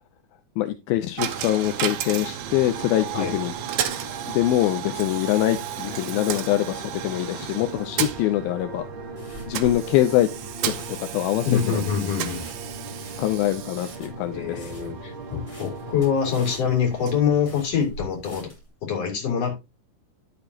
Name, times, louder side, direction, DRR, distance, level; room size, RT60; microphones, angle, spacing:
voice 1, 0.6-3.5 4.3-8.9 9.5-10.3 10.6-11.8 13.2-14.7, left 14 dB, 80° left, 8 dB, 2.3 m, -24 dB
Coin (dropping), 1.2-18.1, right 10 dB, 80° right, 1.7 m, -34 dB
sound 1, 2.4-16.6, right 2 dB, 55° right, 1.5 m, -40 dB
sound 2, 8.6-18.7, right 1 dB, 20° left, 5.3 m, -45 dB
voice 2, 11.4-12.4 14.3-18.5 18.8-19.5, left 7 dB, 40° left, 0 dB, 3.9 m, -25 dB
11.5 x 6.9 x 2.9 m, 0.24 s
omnidirectional pair, 4.6 m